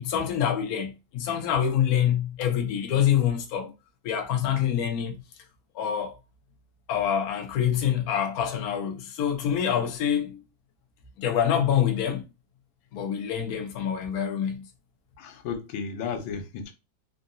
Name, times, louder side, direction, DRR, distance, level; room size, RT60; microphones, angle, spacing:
voice 1, 0.0-3.7 4.0-5.1 5.7-6.2 6.9-10.4 11.2-12.2 12.9-14.7, left 9 dB, 60° left, 1.0 m, -26 dB
voice 2, 15.2-16.7, left 6 dB, 85° left, 1.4 m, -34 dB
3.7 x 2.2 x 2.6 m
omnidirectional pair, 2.1 m